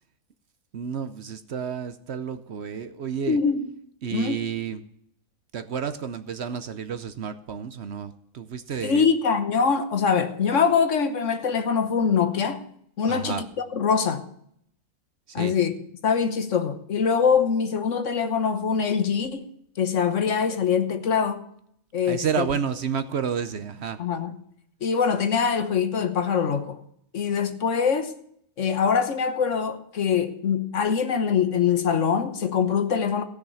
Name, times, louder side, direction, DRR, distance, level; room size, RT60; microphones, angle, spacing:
voice 1, 0.7-3.4 4.0-4.8 5.5-9.1 13.1-13.5 15.3-15.5 22.0-24.0, right 7 dB, 60° right, 0.9 m, -30 dB
voice 2, 3.3-3.7 4.1-4.4 8.8-12.6 13.0-13.4 13.7-14.3 15.3-15.7 16.0-19.5 19.8-21.4 21.9-22.5 24.0-24.4 24.8-26.8 27.1-28.1 28.6-33.2, left 6 dB, 60° left, 1.3 m, -23 dB
16.0 x 6.5 x 7.0 m
omnidirectional pair, 1.4 m